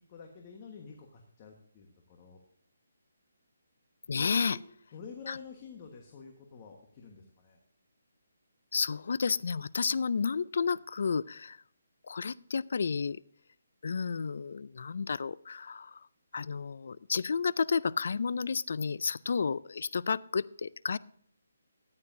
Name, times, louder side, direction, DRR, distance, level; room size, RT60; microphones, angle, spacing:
voice 1, 0.1-2.4 4.2-4.6 4.9-7.6, left 5 dB, 30° left, 2 dB, 1.3 m, -49 dB
voice 2, 4.1-4.6 5.3-5.4 8.7-11.6 12.1-13.2 13.8-16.1 16.3-21.0, left 5 dB, 60° left, 20 dB, 0.4 m, -31 dB
13.5 x 9.7 x 2.6 m, 0.65 s
hypercardioid pair, 160°, 0 cm